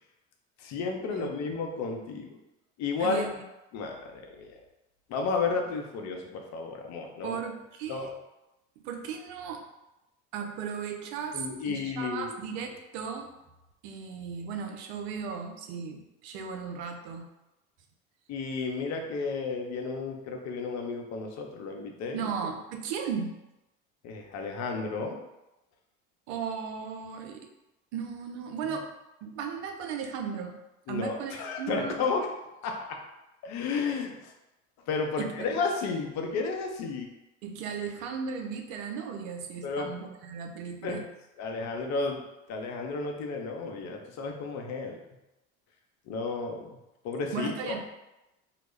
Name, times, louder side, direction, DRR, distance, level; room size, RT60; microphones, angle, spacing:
voice 1, 0.6-2.4 2.8-3.2 3.7-4.5 5.1-7.4 7.9-8.1 11.3-12.3 18.3-22.2 24.0-25.2 28.6-28.8 30.9-32.3 32.6-33.0 33.4-34.3 34.9-37.1 39.6-39.9 40.8-41.0 41.4-42.2 42.5-45.0 46.1-46.8 47.0-47.9, left 4 dB, 50° left, 2 dB, 0.6 m, -32 dB
voice 2, 1.1-1.5 3.0-3.4 7.2-8.2 8.8-9.6 10.3-13.3 13.8-17.3 22.1-23.4 26.3-27.5 27.9-28.9 29.2-30.6 30.9-32.0 35.2-35.5 37.4-41.0 47.3-47.9, right 6 dB, 70° right, 4 dB, 0.5 m, -36 dB
2.3 x 2.0 x 3.1 m, 0.95 s
hypercardioid pair, 70°, 34 cm